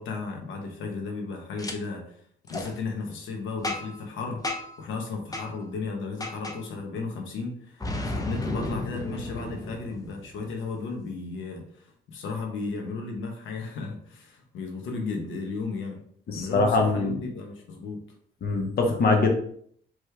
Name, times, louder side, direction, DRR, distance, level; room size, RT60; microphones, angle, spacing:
voice 1, 0.0-2.2 2.5-4.4 4.8-16.0 16.3-18.0, left 4 dB, 80° left, 2 dB, 1.0 m, -34 dB
Boom, 1.6-1.7 2.5-2.7 3.6-4.0 4.4-4.8 5.3-5.5 6.2-6.6 7.8-10.5, left 2 dB, 20° left, 0.7 m, -33 dB
voice 2, 16.3-17.2 18.4-19.3, left 3 dB, 50° left, 3 dB, 1.0 m, -23 dB
4.7 x 3.2 x 3.3 m, 0.63 s
cardioid pair, 90°, 20 cm